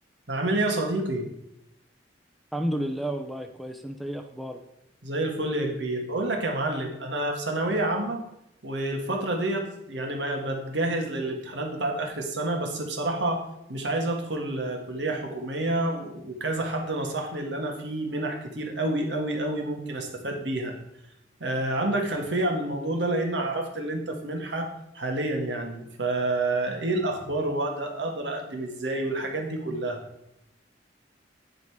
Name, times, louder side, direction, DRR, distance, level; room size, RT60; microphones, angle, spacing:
voice 1, 0.3-1.3 5.0-8.2 8.6-13.4 13.7-20.7 21.4-30.0, right 2 dB, 80° right, 3 dB, 1.7 m, -29 dB
voice 2, 2.5-4.6, right 1 dB, ahead, 6 dB, 0.5 m, -31 dB
9.6 x 5.2 x 4.8 m, 0.83 s
head